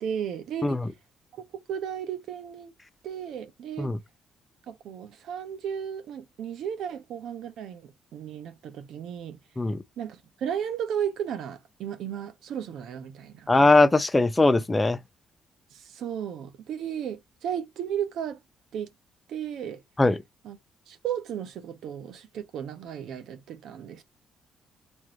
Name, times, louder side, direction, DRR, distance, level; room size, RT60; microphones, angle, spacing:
voice 1, 0.0-0.8 1.3-1.4 1.7-2.7 3.0-3.9 4.7-9.4 10.0-13.5 15.7-18.4 18.7-18.9 19.3-19.8 20.4-20.6 20.9-24.0, right 9 dB, 75° right, 0.8 m, -34 dB
voice 2, 13.5-15.0 20.0-20.2, left 2 dB, 15° left, 0.6 m, -20 dB
4.4 x 2.6 x 3.0 m
cardioid pair, 90°, 0 cm